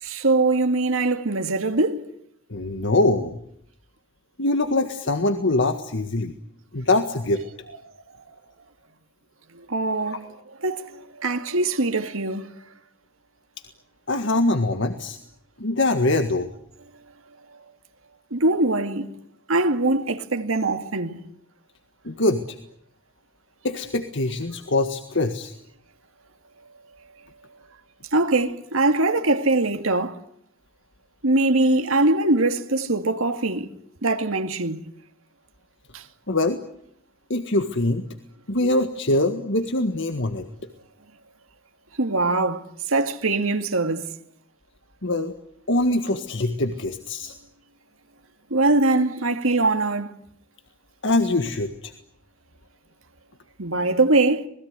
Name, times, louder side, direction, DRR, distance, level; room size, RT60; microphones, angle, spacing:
voice 1, 0.0-2.1 9.5-10.4 10.6-12.5 17.5-17.6 18.3-19.1 19.5-21.2 28.1-30.2 31.2-33.7 34.0-34.8 35.9-36.0 42.0-44.2 48.5-50.1 53.6-54.5, right 2 dB, 85° right, 2.2 m, -22 dB
voice 2, 2.5-3.4 4.4-6.3 6.7-7.4 10.1-10.2 14.1-15.2 15.6-16.5 22.0-22.6 23.6-25.5 36.3-36.6 37.3-38.0 38.5-40.5 45.0-45.3 45.7-47.4 51.0-51.9, left 2 dB, 65° left, 1.8 m, -23 dB
27.5 x 20.5 x 9.7 m
head